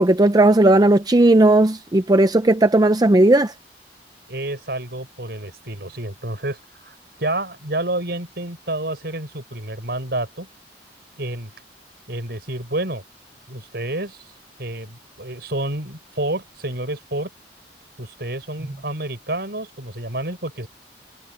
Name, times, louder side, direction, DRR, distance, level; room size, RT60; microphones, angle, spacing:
voice 1, 0.0-3.5, right 2 dB, 20° right, 0.5 m, -15 dB
voice 2, 4.3-10.5 11.2-11.5 12.1-13.0 13.5-14.2 14.6-17.3 18.0-20.7, right 1 dB, 65° right, 6.7 m, -29 dB
head